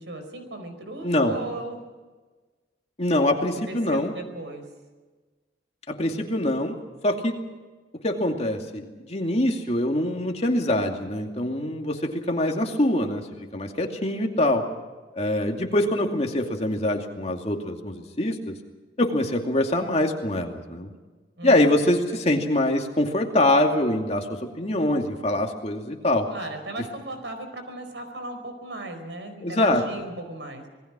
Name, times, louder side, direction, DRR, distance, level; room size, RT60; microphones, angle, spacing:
voice 1, 0.0-1.8 3.7-4.7 21.4-21.7 26.3-30.7, right 2 dB, 85° right, 7 dB, 4.7 m, -36 dB
voice 2, 1.0-1.3 3.0-4.1 5.9-6.8 7.0-7.4 8.0-13.3 13.5-14.7 15.2-18.6 19.0-20.9 21.4-26.3 29.4-29.8, left 1 dB, 35° left, 3 dB, 2.4 m, -24 dB
27.0 x 19.5 x 6.2 m, 1.3 s
head